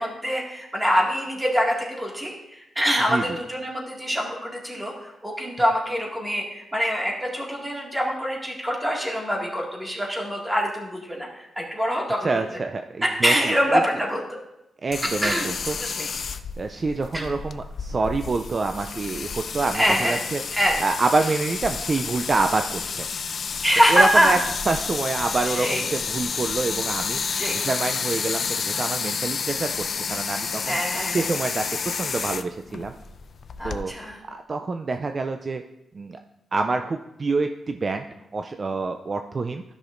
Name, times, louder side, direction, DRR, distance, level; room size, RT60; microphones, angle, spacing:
voice 1, 0.0-12.3 13.0-14.2 15.2-15.5 15.8-16.1 17.1-17.2 19.7-20.2 20.5-20.8 23.6-24.4 25.5-25.8 27.4-27.6 30.7-31.3 33.6-34.2, equal, 10° right, -1 dB, 2.0 m, -24 dB
voice 2, 12.2-13.8 14.8-15.8 16.6-20.4 20.8-23.1 23.9-24.4 24.7-27.2 27.6-30.8 31.1-31.7 31.9-32.9 33.6-33.9 34.2-35.6 35.9-36.2 36.5-38.1 38.3-39.6, right 3 dB, 40° right, 6 dB, 0.4 m, -27 dB
sound 1, 14.9-33.8, left 5 dB, 55° left, 0.4 m, -30 dB
13.0 x 6.1 x 2.5 m, 0.92 s
cardioid pair, 85°, 0 cm